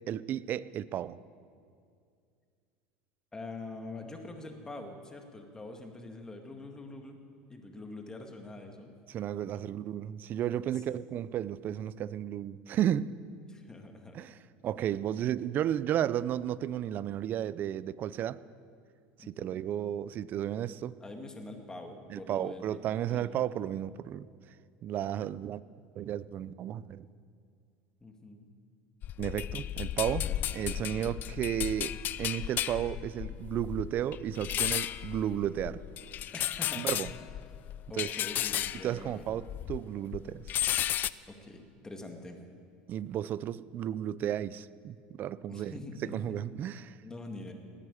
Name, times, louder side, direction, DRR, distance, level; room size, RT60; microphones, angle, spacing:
voice 1, 0.1-1.2 9.1-13.2 14.1-14.3 14.6-18.4 19.3-20.9 22.1-24.3 24.8-25.6 26.0-27.1 29.2-30.3 30.5-35.8 36.7-37.1 38.0-38.1 38.8-40.5 42.9-46.9, right 11 dB, 45° right, 18 dB, 0.5 m, -33 dB
voice 2, 3.3-7.2 7.5-9.0 9.4-9.6 10.9-11.0 13.5-14.2 19.2-19.6 21.0-22.8 23.1-23.4 28.0-28.5 30.2-30.4 30.8-31.2 36.3-37.0 37.9-39.2 41.3-42.4 45.5-46.4 47.0-47.5, left 2 dB, 15° left, 4 dB, 2.0 m, -45 dB
sound 1, 29.0-39.9 40.1-41.1, left 12 dB, 45° left, 0.4 m, -34 dB
18.5 x 9.1 x 8.6 m, 2.3 s
supercardioid pair, 110°, 4 cm